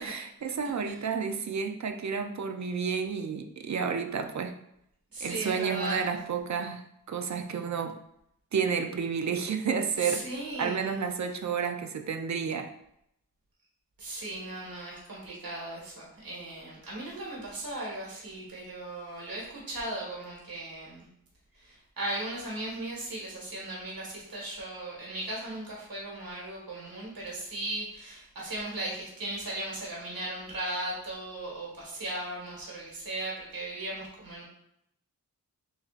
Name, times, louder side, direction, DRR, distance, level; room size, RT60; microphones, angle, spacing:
voice 1, 0.0-4.5 5.2-6.8 7.1-8.0 8.5-10.2 10.6-12.7, right 6 dB, 55° right, 6 dB, 0.5 m, -31 dB
voice 2, 5.1-6.1 10.0-11.0 14.0-21.1 21.5-34.4, right 1 dB, 75° right, -4 dB, 1.6 m, -37 dB
6.9 x 2.7 x 2.5 m, 0.77 s
wide cardioid pair, 110°, 35 cm